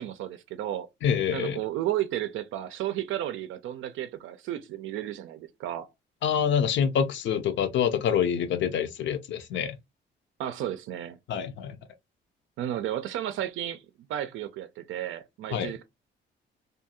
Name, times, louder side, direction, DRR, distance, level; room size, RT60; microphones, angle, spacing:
voice 1, 0.0-0.9 1.3-5.9 10.4-11.2 12.6-13.8 14.1-15.8, right 12 dB, 80° right, 0.4 m, -33 dB
voice 2, 1.0-1.6 6.2-9.7 11.3-11.8 15.5-15.7, left 8 dB, 70° left, 0.6 m, -26 dB
2.7 x 2.3 x 2.8 m
cardioid pair, 90°, 20 cm